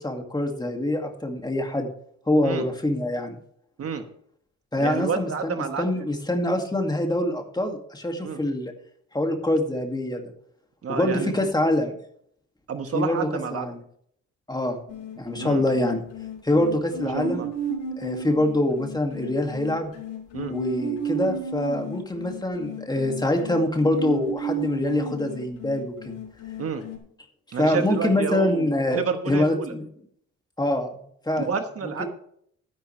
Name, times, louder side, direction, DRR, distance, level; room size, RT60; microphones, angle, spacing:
voice 1, 0.0-1.9 2.3-3.4 4.7-8.7 9.1-10.2 10.9-12.0 12.9-13.8 14.5-14.8 15.2-16.0 16.4-17.4 18.0-19.9 20.5-26.0 27.6-29.8 30.6-30.9 31.3-31.5 32.0-32.1, left 1 dB, 15° left, 3 dB, 2.3 m, -25 dB
voice 2, 4.8-6.0 8.2-8.4 10.8-11.4 12.7-13.7 15.4-15.6 17.1-17.5 20.3-20.6 26.6-26.8 27.5-29.7 31.4-32.1, right 6 dB, 50° right, 7 dB, 1.4 m, -29 dB
sound 1, 14.9-27.0, right 2 dB, 80° left, 3.5 m, -34 dB
12.5 x 10.5 x 3.3 m, 0.64 s
cardioid pair, 90°, 30 cm